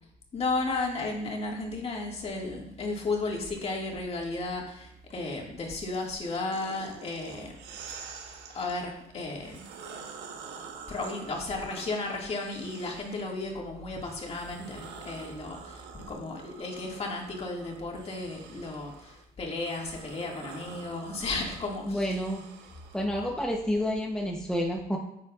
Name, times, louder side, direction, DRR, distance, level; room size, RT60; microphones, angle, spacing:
voice 1, 0.3-7.6 8.5-9.7 10.9-22.2, left 3 dB, 35° left, -1 dB, 2.1 m, -34 dB
sound 1, 6.5-8.8 9.3-13.4 13.9-23.1, right 6 dB, 90° right, 1.2 m, -47 dB
voice 2, 21.8-22.4 22.9-25.0, equal, 5° left, 0 dB, 0.9 m, -29 dB
10.5 x 7.4 x 2.5 m, 0.84 s
cardioid pair, 110°, 17 cm